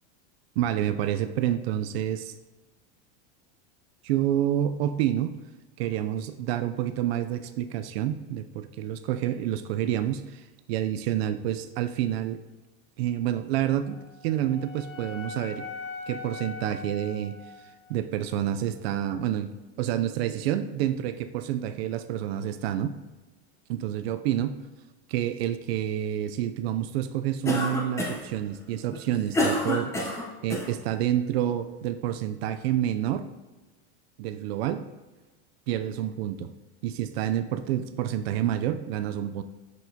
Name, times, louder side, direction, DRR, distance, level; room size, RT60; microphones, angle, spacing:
voice 1, 0.6-2.3 4.0-5.4 5.8-12.4 13.0-15.7 16.1-17.3 17.9-19.5 19.8-23.0 23.7-24.5 25.1-29.9 30.4-33.3 34.2-34.8 35.7-36.5 36.8-39.4, right 11 dB, 70° right, 9 dB, 0.5 m, -28 dB
Wind instrument woodwind instrument, 13.8-18.0, left 4 dB, 55° left, 1.0 m, -41 dB
Cough, 27.5-28.3 28.9-30.7, left 1 dB, 10° left, 0.7 m, -28 dB
6.7 x 6.2 x 2.7 m, 1.2 s
supercardioid pair, 160°, 33 cm